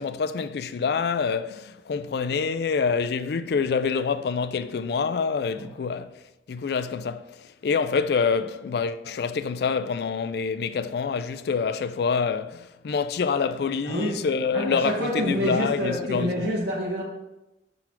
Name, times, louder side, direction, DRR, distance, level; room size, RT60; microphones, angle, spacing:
voice 1, 0.0-6.1 6.5-16.5, left 5 dB, 60° left, 0.3 m, -26 dB
voice 2, 13.8-14.3 14.5-17.0, equal, 70° right, 1.2 m, -27 dB
5.9 x 3.9 x 4.4 m
head